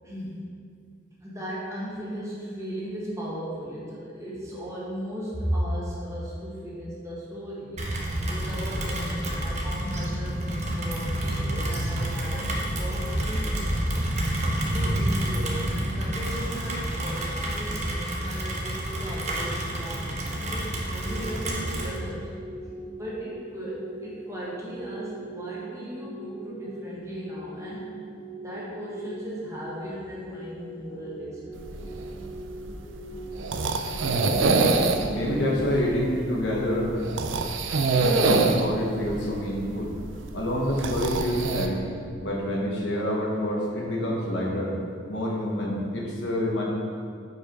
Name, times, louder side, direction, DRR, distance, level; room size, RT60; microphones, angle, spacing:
voice 1, 0.0-0.5 1.2-7.8 8.2-13.8 14.7-22.3 22.9-27.9 28.4-31.6, equal, 15° right, -7 dB, 1.5 m, -36 dB
Rain, 7.8-22.0, right 1 dB, 40° right, 0.8 m, -29 dB
sound 1, 20.9-36.2, right 2 dB, 10° left, 1.1 m, -41 dB
sound 2, 31.6-41.7, right 3 dB, 85° right, 0.4 m, -26 dB
voice 2, 34.0-34.5 35.1-37.0 38.0-39.9 40.3-41.8 42.2-44.7 45.1-46.6, left 1 dB, 70° left, -2 dB, 1.1 m, -27 dB
4.9 x 4.6 x 5.2 m, 2.2 s
head